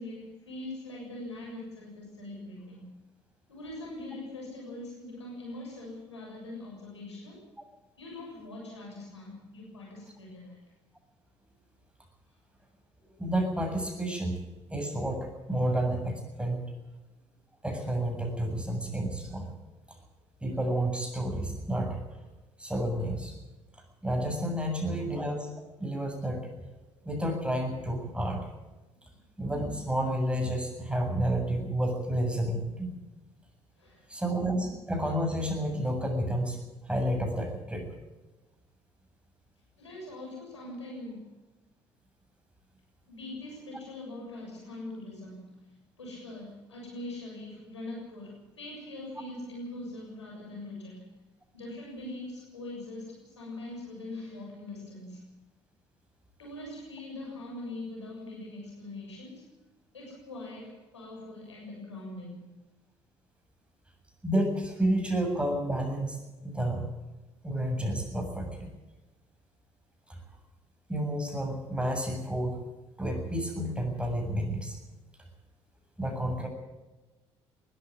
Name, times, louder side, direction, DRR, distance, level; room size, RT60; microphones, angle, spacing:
voice 1, 0.0-2.9 3.5-7.4 8.0-10.6 33.8-34.1 39.8-41.3 43.1-51.2 51.5-55.3 56.4-59.5 59.9-62.5, left 2 dB, 90° left, -1 dB, 7.0 m, -42 dB
voice 2, 13.2-14.4 14.7-16.6 17.6-19.5 20.4-22.0 22.6-23.3 24.0-25.5 25.8-26.5 27.0-28.5 29.4-32.9 34.1-36.6 36.9-37.9 64.2-66.9 67.4-68.7 70.1-70.2 70.9-72.6 73.0-74.7 76.0-76.5, right 1 dB, 5° right, 2 dB, 7.6 m, -30 dB
20.0 x 13.5 x 9.6 m, 1.1 s
figure-of-eight pair, 50°, 14 cm